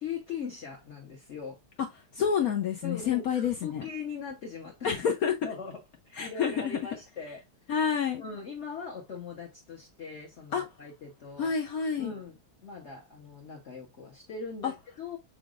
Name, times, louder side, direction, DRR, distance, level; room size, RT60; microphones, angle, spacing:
voice 1, 0.0-1.6 2.8-5.1 5.4-5.8 6.0-7.4 8.2-11.5 12.0-15.2, left 5 dB, 45° left, 1.1 m, -40 dB
voice 2, 2.1-3.9 4.8-5.3 6.2-6.8 7.7-8.2 10.5-10.6 11.4-12.1 14.6-14.7, left 7 dB, 70° left, 0.8 m, -28 dB
6.1 x 3.5 x 2.4 m
omnidirectional pair, 2.3 m